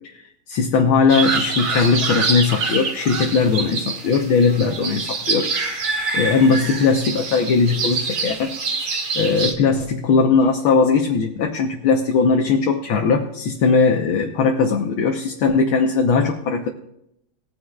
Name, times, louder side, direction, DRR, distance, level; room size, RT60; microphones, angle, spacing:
voice 1, 0.5-8.6 9.2-16.7, left 4 dB, 75° left, 2 dB, 1.9 m, -19 dB
sound 1, 1.1-9.5, right 4 dB, 75° right, 2.9 m, -25 dB
19.5 x 9.7 x 2.4 m, 0.78 s
omnidirectional pair, 2.3 m